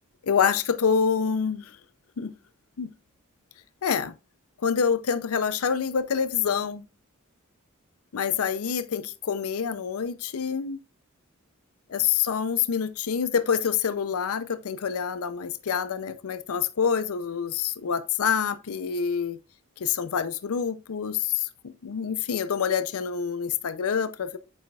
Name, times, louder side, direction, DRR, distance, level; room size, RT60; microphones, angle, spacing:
voice 1, 0.2-1.8 2.2-2.3 2.8-2.9 3.8-4.1 4.6-6.8 8.1-10.8 11.9-19.4 19.8-24.4, left 7 dB, 85° left, 0.5 m, -26 dB
8.7 x 6.2 x 2.3 m
head